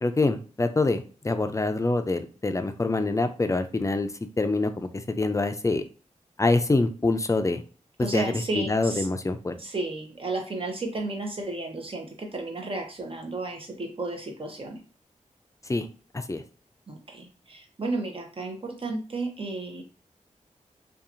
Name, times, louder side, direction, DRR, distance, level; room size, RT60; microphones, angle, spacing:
voice 1, 0.0-4.1 4.4-5.8 6.4-7.6 8.0-9.5 15.7-15.9 16.1-16.4, left 2 dB, 25° left, 8 dB, 0.4 m, -25 dB
voice 2, 8.0-9.1 9.6-14.8 16.9-19.8, right 2 dB, 40° right, 2 dB, 0.8 m, -33 dB
2.7 x 2.3 x 2.5 m, 0.37 s
cardioid pair, 45°, 14 cm